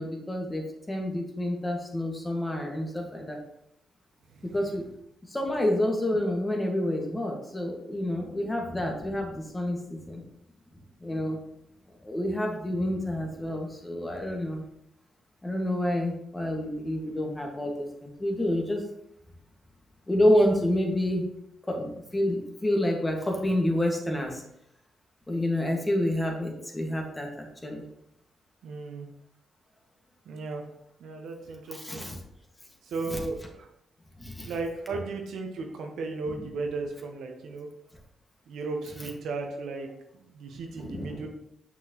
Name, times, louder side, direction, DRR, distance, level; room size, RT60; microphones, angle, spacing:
voice 1, 0.0-3.4 4.4-4.8 5.3-10.2 11.0-11.4 12.0-14.6 15.4-18.8 20.1-21.3 21.7-24.4 25.3-27.8 31.7-32.2 33.1-33.2 34.2-34.5 36.3-36.5 39.0-39.1 40.8-41.2, left 1 dB, 20° left, 1 dB, 1.9 m, -28 dB
voice 2, 28.6-29.1 30.3-30.7 31.0-32.0 32.9-33.7 34.4-37.7 38.5-39.9 40.1-41.3, right 3 dB, 75° right, 3 dB, 1.0 m, -35 dB
6.2 x 6.0 x 3.1 m, 0.79 s
supercardioid pair, 45°, 0 cm